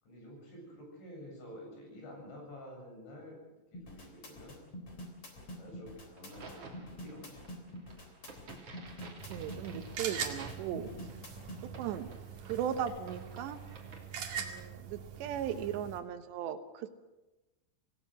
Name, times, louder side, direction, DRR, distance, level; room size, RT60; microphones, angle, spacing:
voice 1, 0.0-4.6 5.3-7.7, equal, 70° left, -1 dB, 10.0 m, -50 dB
sound 1, 3.7-11.6, equal, 35° left, 4.1 m, -46 dB
Crack, 6.2-14.7, right 3 dB, 35° right, 3.3 m, -52 dB
sound 2, 9.2-16.0, right 7 dB, 50° right, 3.1 m, -43 dB
voice 2, 9.3-10.9 11.6-12.1 12.5-13.6 14.4-17.0, right 9 dB, 70° right, 9 dB, 3.1 m, -37 dB
26.5 x 18.0 x 6.4 m, 1.1 s
omnidirectional pair, 5.5 m